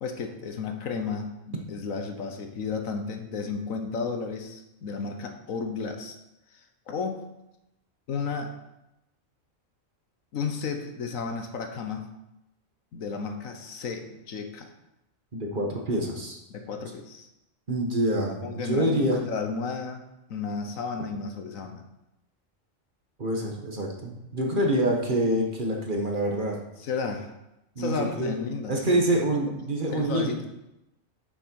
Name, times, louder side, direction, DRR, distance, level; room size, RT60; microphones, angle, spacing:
voice 1, 0.0-6.2 6.5-7.2 8.1-8.5 10.3-12.1 12.9-14.7 16.5-17.3 18.4-20.0 20.3-21.8 26.8-27.3 27.8-29.0 29.5-29.6 29.9-30.4, left 5 dB, 80° left, 6 dB, 1.4 m, -33 dB
voice 2, 15.3-16.4 17.7-19.2 23.2-26.6 27.7-28.3 28.7-30.5, right 1 dB, 40° right, 0 dB, 1.5 m, -26 dB
9.1 x 7.1 x 4.7 m, 0.90 s
omnidirectional pair, 1.4 m